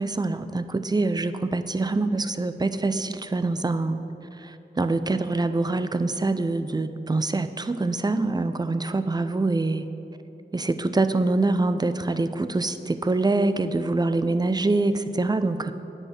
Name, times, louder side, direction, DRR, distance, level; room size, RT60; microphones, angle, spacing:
voice 1, 0.0-4.0 4.3-9.9 10.5-15.7, right 2 dB, 20° right, 11 dB, 0.4 m, -25 dB
9.5 x 6.2 x 6.6 m, 2.9 s
wide cardioid pair, 60°, 20 cm